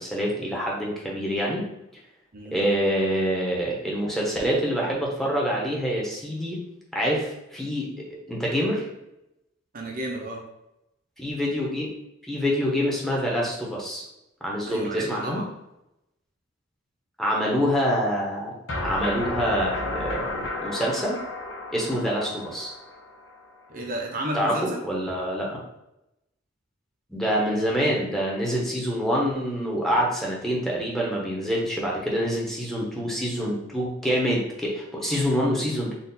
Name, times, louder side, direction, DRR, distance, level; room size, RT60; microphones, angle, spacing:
voice 1, 0.0-1.6 2.4-6.6 6.9-7.9 8.3-8.9 11.2-11.9 12.3-14.0 14.4-15.4 17.2-20.2 20.6-21.2 21.7-22.7 24.3-25.6 27.1-35.9, equal, ahead, -4 dB, 1.0 m, -26 dB
voice 2, 2.3-2.7 9.7-10.4 14.7-15.4 21.8-22.1 23.7-24.8, right 1 dB, 45° right, 0 dB, 0.7 m, -33 dB
sound 1, 18.7-23.6, left 2 dB, 80° left, 0.8 m, -32 dB
4.1 x 2.5 x 4.0 m, 0.87 s
head